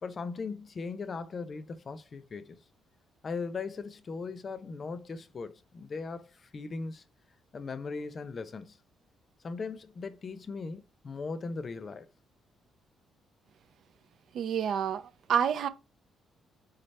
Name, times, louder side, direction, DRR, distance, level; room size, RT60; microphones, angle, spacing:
voice 1, 0.0-2.6 3.2-7.0 7.5-8.8 9.4-12.1, left 4 dB, 40° left, 0.6 m, -38 dB
voice 2, 14.3-15.0 15.3-15.7, right 8 dB, 70° right, 0.5 m, -28 dB
4.1 x 3.8 x 3.3 m
cardioid pair, 90°, 0 cm